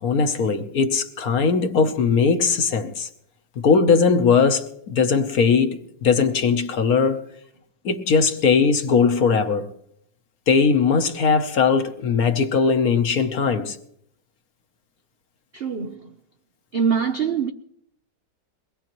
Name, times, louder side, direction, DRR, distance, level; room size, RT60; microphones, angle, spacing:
voice 1, 0.0-3.1 3.6-7.2 7.8-9.7 10.5-13.8, left 5 dB, 55° left, 1.3 m, -19 dB
voice 2, 15.5-16.1 16.7-17.5, right 6 dB, 85° right, 0.5 m, -24 dB
22.5 x 19.5 x 3.0 m
omnidirectional pair, 2.0 m